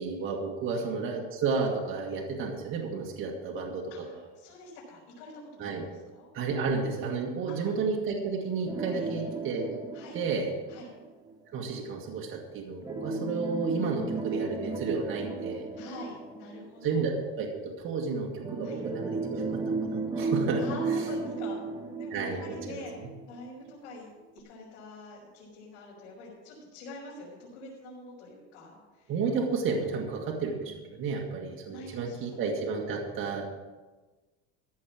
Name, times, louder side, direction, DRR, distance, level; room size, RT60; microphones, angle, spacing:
voice 1, 0.0-4.1 5.6-5.9 6.3-9.8 10.1-10.5 11.5-15.6 16.8-20.6 22.1-23.1 29.1-33.4, right 4 dB, 40° right, 0 dB, 1.8 m, -32 dB
voice 2, 3.9-6.3 7.5-7.7 8.9-9.3 9.9-10.2 10.7-10.9 14.3-14.6 15.8-17.0 18.6-18.8 20.6-29.1 30.5-31.0 31.7-32.4, left 2 dB, 85° left, -7 dB, 4.7 m, -46 dB
sound 1, 8.7-11.3 12.8-17.2 18.4-23.3 23.7-23.8 24.4-24.5, right 3 dB, 10° right, 1.1 m, -34 dB
15.0 x 6.5 x 6.1 m, 1.2 s
cardioid pair, 145°, 33 cm